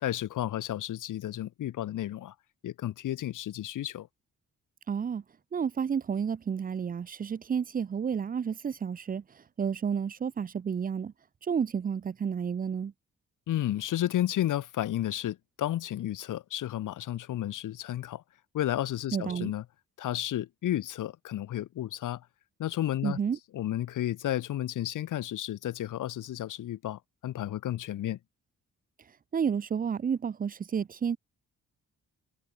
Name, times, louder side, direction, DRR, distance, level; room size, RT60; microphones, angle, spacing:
voice 1, 0.0-2.3 2.6-4.1 13.5-18.2 18.5-19.6 20.0-22.2 22.6-23.2 23.5-28.2, left 12 dB, 80° left, 1.0 m, -32 dB
voice 2, 4.9-5.2 5.5-9.2 9.6-11.1 11.5-12.9 19.1-19.5 23.0-23.4 29.3-31.2, right 7 dB, 30° right, 0.5 m, -31 dB
wide cardioid pair, 175°, 31 cm